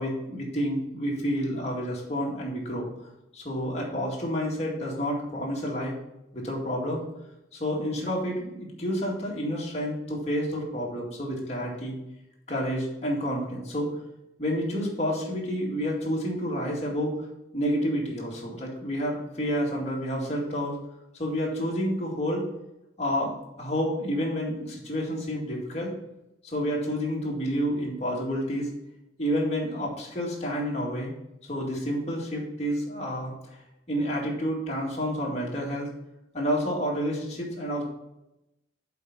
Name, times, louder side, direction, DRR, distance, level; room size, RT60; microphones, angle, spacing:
voice 1, 0.0-5.9 6.3-7.0 7.5-12.0 12.5-13.9 14.4-17.3 17.5-20.7 21.2-22.5 23.0-26.0 26.4-28.7 29.2-31.1 31.5-33.3 33.9-35.9 36.3-37.8, equal, 35° left, -3 dB, 2.0 m, -29 dB
7.2 x 4.7 x 5.3 m, 0.88 s
head